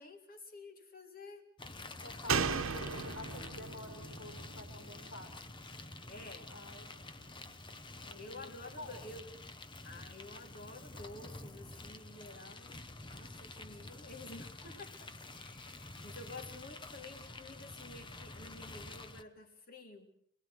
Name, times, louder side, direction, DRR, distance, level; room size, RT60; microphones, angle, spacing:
voice 1, 0.0-1.5 6.1-6.6 8.1-9.2 9.8-20.1, left 2 dB, 40° left, 4 dB, 3.6 m, -51 dB
sound 1, 1.6-19.2, left 2 dB, 20° left, 1.1 m, -49 dB
voice 2, 2.0-5.3 6.3-6.9 8.0-8.9, left 2 dB, 70° left, 4 dB, 5.9 m, -50 dB
Slam, 2.3-5.8 6.1-6.2, right 5 dB, 70° right, 1.4 m, -37 dB
28.5 x 20.5 x 6.4 m, 0.67 s
head